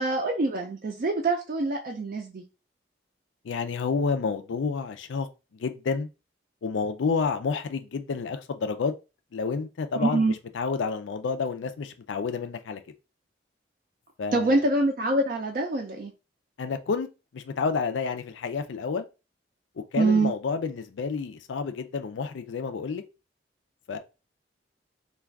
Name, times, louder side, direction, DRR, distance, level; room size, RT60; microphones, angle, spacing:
voice 1, 0.0-2.4 10.0-10.3 14.3-16.1 20.0-20.3, right 2 dB, 50° right, 0.4 m, -25 dB
voice 2, 3.4-5.3 5.6-6.1 6.6-8.9 9.3-12.8 14.2-14.7 16.6-17.1 17.3-19.1 19.9-23.0 23.9-24.0, left 5 dB, 90° left, 0.4 m, -29 dB
2.3 x 2.3 x 3.4 m
head